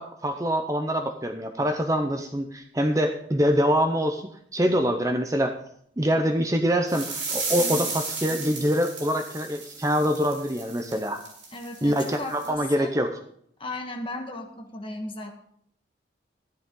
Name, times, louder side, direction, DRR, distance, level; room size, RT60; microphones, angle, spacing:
voice 1, 0.0-5.5 6.0-11.2 11.8-13.2, equal, 15° right, 5 dB, 0.7 m, -25 dB
sound 1, 6.9-12.5, right 3 dB, 70° right, 6.0 m, -34 dB
voice 2, 7.6-7.9 11.5-12.9 13.6-15.3, left 2 dB, 30° left, 3 dB, 1.5 m, -36 dB
13.0 x 11.0 x 3.8 m, 0.67 s
head